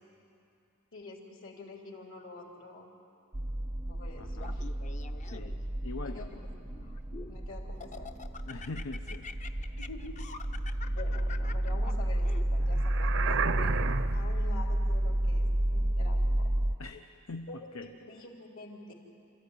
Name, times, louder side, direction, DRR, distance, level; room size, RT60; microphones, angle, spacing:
voice 1, 0.9-2.9 3.9-4.7 5.3-5.5 6.0-6.5 7.3-8.1 9.8-10.1 10.9-13.8 14.1-16.5 17.5-18.9, left 2 dB, 65° left, 0 dB, 3.3 m, -47 dB
sound 1, 3.3-16.8, right 1 dB, 20° right, 0.6 m, -31 dB
voice 2, 4.2-4.6 5.3-5.6 5.8-6.3 8.4-9.3 16.8-17.5 17.7-17.9, left 3 dB, 85° left, 6 dB, 0.8 m, -42 dB
Laughter, 4.4-5.7 6.3-7.4 7.8-12.8, left 5 dB, 35° left, 0.7 m, -46 dB
sound 2, 12.8-14.4, right 6 dB, 60° right, 0.6 m, -32 dB
28.0 x 14.0 x 9.8 m, 2.6 s
head